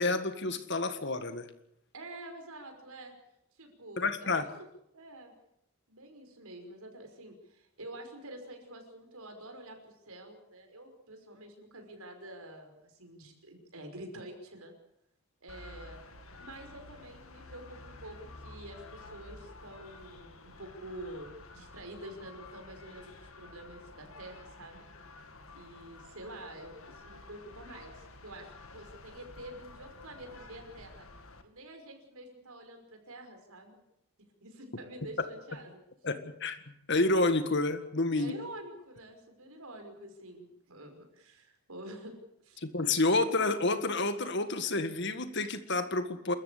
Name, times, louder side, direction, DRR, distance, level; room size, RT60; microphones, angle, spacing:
voice 1, 0.0-1.5 4.0-4.4 36.0-36.6 36.9-38.3 42.6-46.3, left 2 dB, 50° left, 10 dB, 1.8 m, -29 dB
voice 2, 1.9-3.1 3.5-4.5 4.9-5.3 5.9-14.7 15.4-16.0 16.4-24.8 25.5-31.1 31.4-33.8 34.4-35.8 38.1-42.1 42.4-42.6, right 1 dB, 80° right, 5 dB, 5.6 m, -47 dB
sound 1, 15.5-31.4, left 2 dB, 70° left, 2.0 m, -51 dB
27.5 x 14.5 x 8.5 m, 0.79 s
head